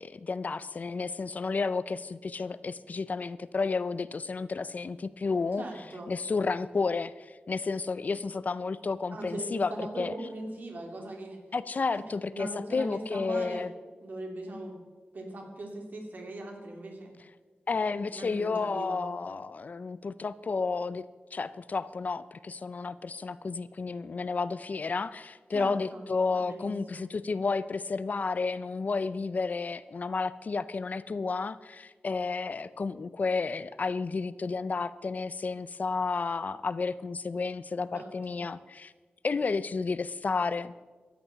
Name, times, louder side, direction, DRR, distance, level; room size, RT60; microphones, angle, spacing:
voice 1, 0.0-5.6 6.1-9.7 10.0-10.1 11.5-13.7 17.7-21.0 21.3-38.9 39.2-40.7, left 4 dB, 45° left, 16 dB, 0.4 m, -31 dB
voice 2, 5.6-6.1 9.1-11.4 12.3-13.7 14.0-14.8 15.1-17.1 18.1-19.1 25.5-26.0 26.3-27.1 37.9-38.4, right 1 dB, 55° right, 2 dB, 2.8 m, -40 dB
14.0 x 10.0 x 6.9 m, 1.4 s
wide cardioid pair, 145°, 4 cm